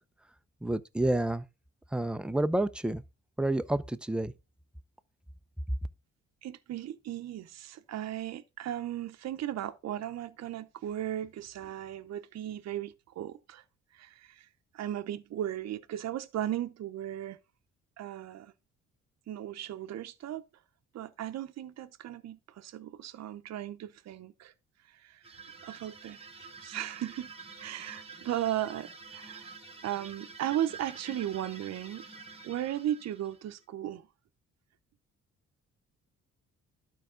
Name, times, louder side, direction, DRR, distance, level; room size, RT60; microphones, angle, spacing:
voice 1, 0.6-1.4 1.9-3.0 3.4-4.3, right 1 dB, 5° right, 0.5 m, -29 dB
voice 2, 6.4-13.6 13.9-14.5 14.7-17.4 18.0-18.5 19.3-20.4 20.9-24.5 25.0-25.4 25.6-26.2 26.6-27.3 27.6-29.5 29.8-32.1 32.4-34.1, right 12 dB, 60° right, 0.7 m, -36 dB
sound 1, 25.2-33.6, right 4 dB, 20° right, 1.2 m, -48 dB
12.0 x 4.7 x 3.7 m
cardioid pair, 90°, 30 cm